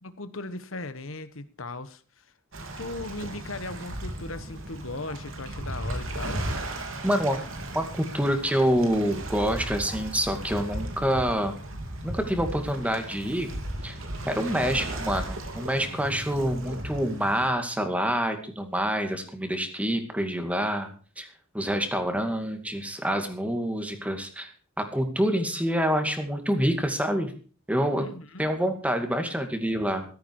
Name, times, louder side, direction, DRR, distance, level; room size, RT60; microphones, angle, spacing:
voice 1, 0.0-2.3 2.8-6.5 27.9-28.5, left 2 dB, 85° left, 12 dB, 1.3 m, -38 dB
Waves surf, 2.5-17.5, right 1 dB, 80° right, 3.6 m, -36 dB
voice 2, 7.0-7.4 7.7-11.6 12.0-13.5 13.8-14.0 14.3-21.3 21.5-24.5 24.8-27.3 27.7-28.1 28.4-30.1, equal, 5° right, 6 dB, 2.3 m, -27 dB
15.0 x 13.5 x 4.8 m, 0.38 s
head